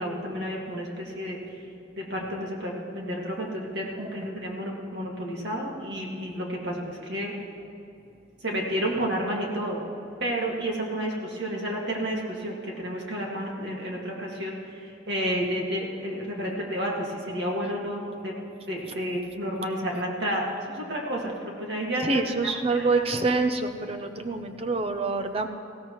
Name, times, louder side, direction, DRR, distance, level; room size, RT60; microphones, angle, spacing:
voice 1, 0.0-1.4 2.0-7.3 8.4-9.8 10.2-18.3 18.7-23.0, equal, 55° right, -2 dB, 2.1 m, -31 dB
voice 2, 22.0-25.5, right 3 dB, 30° right, 6 dB, 0.7 m, -26 dB
19.5 x 15.5 x 3.2 m, 2.7 s
head